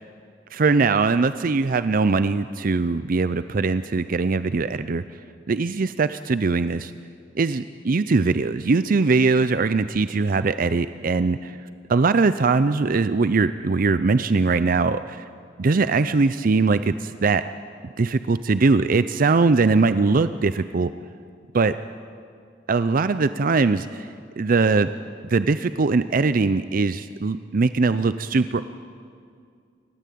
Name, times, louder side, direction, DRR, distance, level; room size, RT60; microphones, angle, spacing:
voice 1, 0.5-5.0 5.5-6.9 7.3-11.6 11.9-15.2 15.6-17.4 18.0-20.9 21.5-21.7 22.7-24.1 24.4-24.9 25.3-28.6, right 4 dB, 50° right, 13 dB, 0.5 m, -21 dB
29.0 x 13.0 x 8.4 m, 2.2 s
head